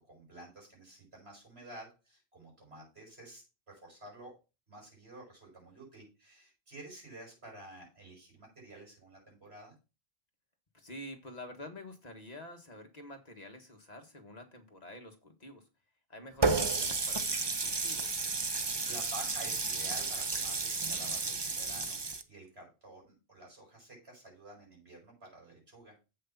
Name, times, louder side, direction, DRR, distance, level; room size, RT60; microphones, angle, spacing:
voice 1, 0.0-4.3 4.7-9.7 18.4-22.0 22.3-25.9, right 1 dB, 90° right, -1 dB, 6.5 m, -51 dB
voice 2, 10.7-15.6 16.1-18.2, left 1 dB, 40° left, 4 dB, 1.7 m, -48 dB
Water tap faucet, 16.4-22.2, right 4 dB, 30° right, 0.7 m, -32 dB
8.0 x 6.4 x 5.9 m, 0.30 s
omnidirectional pair, 1.0 m